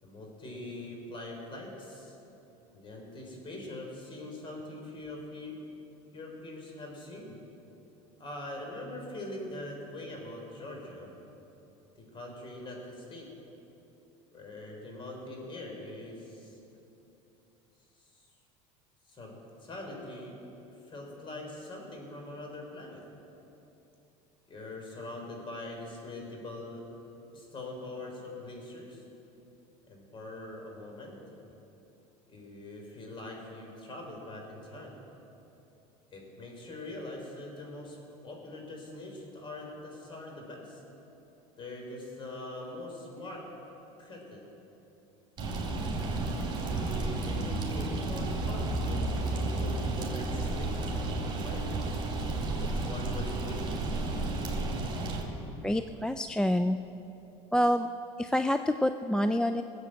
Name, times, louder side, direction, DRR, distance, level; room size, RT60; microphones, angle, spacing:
voice 1, 0.0-2.2 2.7-5.6 6.1-7.4 8.2-11.1 12.0-13.3 14.3-16.6 18.0-18.2 19.1-20.4 20.9-23.0 24.5-26.9 27.3-29.0 29.9-31.2 32.3-35.0 36.1-40.8 41.6-43.5 44.0-44.5 46.7-52.1 52.6-53.7, left 1 dB, 35° left, 1 dB, 4.2 m, -43 dB
sound 1, 45.4-55.2, right 2 dB, 30° right, 3.5 m, -32 dB
voice 2, 55.6-56.8 57.5-57.9 58.2-59.6, left 1 dB, 5° left, 9 dB, 0.3 m, -27 dB
19.0 x 8.0 x 7.7 m, 3.0 s
supercardioid pair, 110°, 15 cm